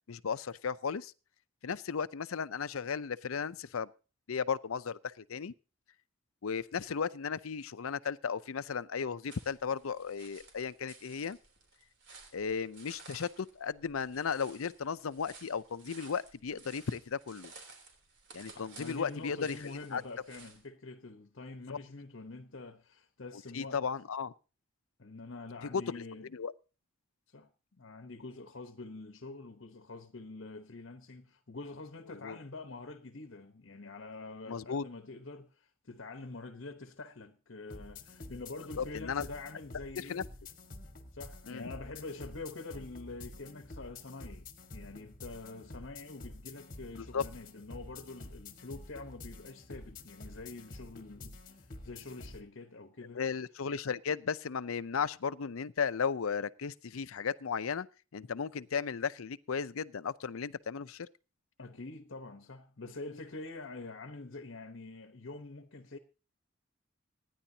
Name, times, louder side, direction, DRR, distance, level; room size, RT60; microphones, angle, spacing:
voice 1, 0.1-1.1 1.6-3.9 4.3-5.5 6.4-11.4 12.3-17.5 18.3-20.0 21.7-21.8 23.5-24.3 25.7-26.0 26.3-26.5 32.2-32.4 34.5-34.8 38.8-39.2 40.0-40.2 41.5-41.6 46.9-47.2 53.1-57.9 58.1-61.1, left 6 dB, 85° left, 0.6 m, -35 dB
sound 1, 9.3-20.6, right 4 dB, 55° right, 3.4 m, -55 dB
voice 2, 18.5-23.8 25.0-26.3 27.3-40.2 41.1-53.2 61.6-66.0, left 3 dB, 60° left, 1.0 m, -46 dB
sound 2, 37.7-52.4, left 2 dB, 40° left, 1.5 m, -49 dB
26.0 x 10.5 x 2.8 m
head